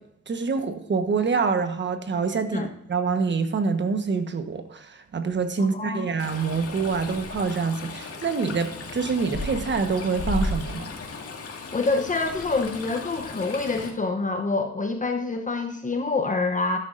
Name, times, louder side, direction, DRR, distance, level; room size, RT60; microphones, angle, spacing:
voice 1, 0.3-10.9, right 5 dB, 40° right, 7 dB, 1.3 m, -26 dB
voice 2, 5.6-6.1 11.7-16.8, left 3 dB, 25° left, 5 dB, 0.9 m, -26 dB
Stream, 6.2-13.9, left 2 dB, 55° left, 2.1 m, -35 dB
13.0 x 11.0 x 2.6 m, 0.76 s
cardioid pair, 120°, 29 cm